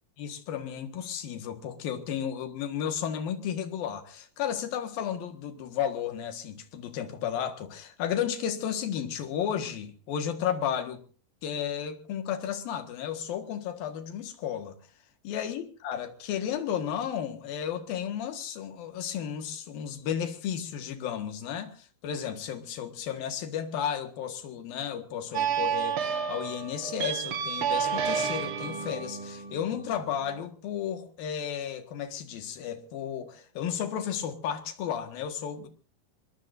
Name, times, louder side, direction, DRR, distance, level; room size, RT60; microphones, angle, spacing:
voice 1, 0.2-11.0 11.4-14.8 15.2-35.7, left 9 dB, 70° left, 3.4 m, -33 dB
sound 1, 25.3-30.4, right 7 dB, 65° right, 1.3 m, -31 dB
25.5 x 21.5 x 2.6 m
omnidirectional pair, 4.5 m